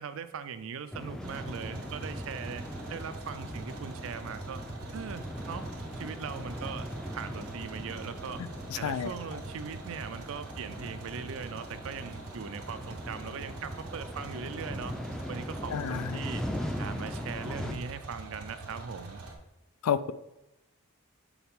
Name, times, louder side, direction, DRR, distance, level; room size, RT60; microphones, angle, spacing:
voice 1, 0.0-4.6 4.9-5.7 6.0-8.4 8.7-14.9 15.3-16.4 16.8-19.2, right 6 dB, 65° right, 12 dB, 0.4 m, -40 dB
sound 1, 0.9-17.7, equal, 5° left, 0.4 m, -40 dB
sound 2, 1.2-19.4, right 3 dB, 80° right, 1.0 m, -44 dB
voice 2, 8.7-9.1 15.7-16.2 19.8-20.1, left 8 dB, 85° left, 15 dB, 0.4 m, -30 dB
7.0 x 4.0 x 3.6 m, 0.95 s
head